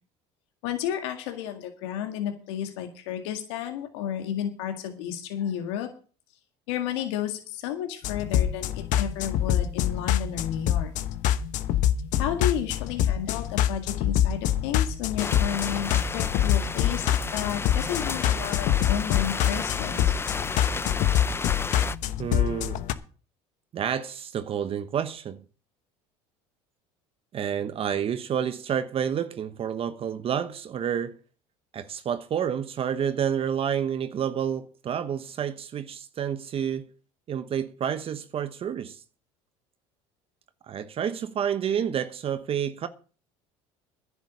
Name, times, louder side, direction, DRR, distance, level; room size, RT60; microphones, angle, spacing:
voice 1, 0.6-5.9 6.7-10.9 12.2-20.2, left 10 dB, 85° left, 1.9 m, -32 dB
sound 1, 8.0-22.9, left 11 dB, 65° left, 1.1 m, -25 dB
sound 2, 15.2-22.0, left 4 dB, 15° left, 0.6 m, -33 dB
voice 2, 22.2-22.8 23.7-25.4 27.3-31.2 31.7-36.9 37.3-39.0 40.6-42.9, right 8 dB, 40° right, 1.0 m, -29 dB
10.5 x 7.2 x 8.4 m
supercardioid pair, 95°, 14 cm